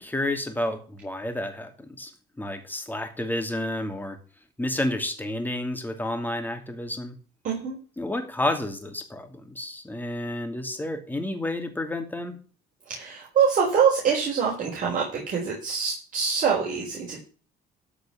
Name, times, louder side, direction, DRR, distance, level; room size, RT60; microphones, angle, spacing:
voice 1, 0.0-2.1 2.4-4.2 4.6-7.2 8.0-12.4, left 1 dB, 10° left, 6 dB, 2.7 m, -30 dB
voice 2, 7.4-7.8 12.9-17.2, right 6 dB, 50° right, -3 dB, 4.7 m, -24 dB
13.5 x 5.3 x 6.9 m, 0.39 s
cardioid pair, 110°, 17 cm